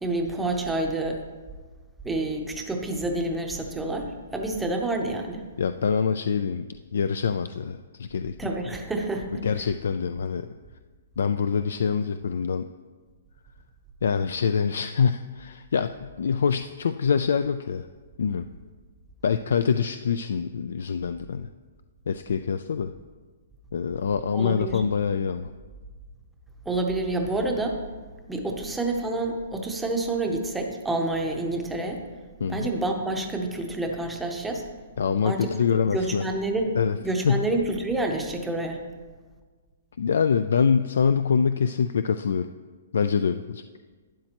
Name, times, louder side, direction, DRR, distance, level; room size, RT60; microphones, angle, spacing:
voice 1, 0.0-1.2 2.0-5.4 8.4-9.4 24.3-24.8 26.7-27.8 28.3-32.0 32.5-34.6 35.2-35.5 35.9-36.7 37.0-38.8, right 2 dB, 5° right, 2 dB, 0.7 m, -28 dB
voice 2, 5.6-6.7 6.9-8.3 9.4-10.5 11.2-12.7 14.0-17.9 18.2-18.5 19.2-21.5 22.1-22.9 23.7-25.5 32.4-32.7 35.0-36.2 36.8-37.0 37.2-37.5 40.0-42.5 42.9-43.6, left 6 dB, 70° left, 10 dB, 0.3 m, -25 dB
12.0 x 9.1 x 2.9 m, 1.5 s
hypercardioid pair, 170°, 0 cm